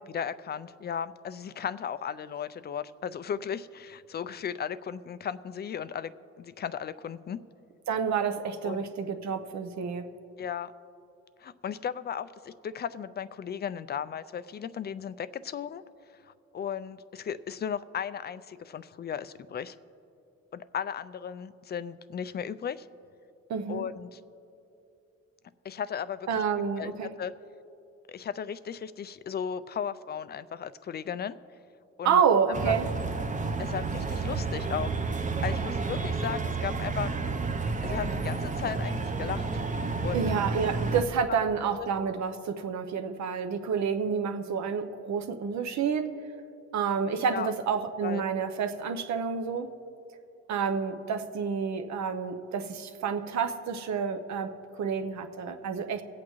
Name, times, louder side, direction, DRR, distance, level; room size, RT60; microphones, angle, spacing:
voice 1, 0.1-6.1 6.4-7.4 8.6-8.9 10.4-10.7 11.4-15.8 16.2-19.8 20.5-22.9 23.7-24.2 25.6-26.4 26.8-26.9 27.2-27.3 28.1-31.4 32.0-32.2 32.6-32.7 33.6-34.9 35.4-37.1 37.8-39.5 40.0-40.3 41.3-41.4 41.8-41.9 47.3-47.5 48.0-48.2, left 8 dB, 35° left, 14 dB, 0.4 m, -35 dB
voice 2, 7.9-10.1 23.5-23.8 26.3-27.1 32.0-32.9 40.1-46.1 46.7-49.7 50.5-56.0, right 6 dB, 65° right, 7 dB, 0.8 m, -29 dB
sound 1, 32.5-41.0, right 4 dB, 25° right, 0.7 m, -31 dB
22.5 x 8.5 x 3.1 m, 2.7 s
cardioid pair, 90°, 30 cm